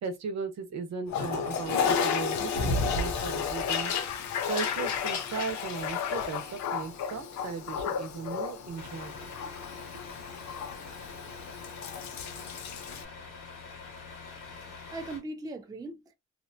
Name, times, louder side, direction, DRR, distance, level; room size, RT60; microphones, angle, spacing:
voice 1, 0.0-3.9 4.5-9.5, right 5 dB, 65° right, 0.8 m, -37 dB
Toilet flush, 1.1-13.0, left 6 dB, 70° left, 0.6 m, -32 dB
Truck, 8.8-15.2, left 5 dB, 90° left, 1.2 m, -45 dB
voice 2, 14.4-16.1, right 2 dB, 15° right, 0.4 m, -40 dB
2.6 x 2.2 x 2.6 m
cardioid pair, 90°, 30 cm